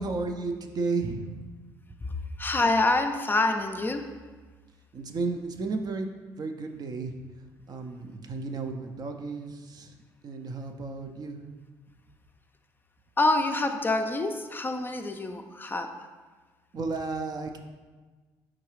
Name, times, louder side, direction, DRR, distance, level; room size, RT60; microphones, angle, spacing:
voice 1, 0.0-1.4 4.9-6.1 6.4-7.2 7.7-9.9 10.2-11.4 16.7-17.6, right 3 dB, 45° right, 5 dB, 0.5 m, -33 dB
voice 2, 2.4-4.1 13.2-15.9, left 2 dB, 20° left, 6 dB, 0.4 m, -26 dB
4.6 x 3.7 x 3.1 m, 1.4 s
hypercardioid pair, 60°, 9 cm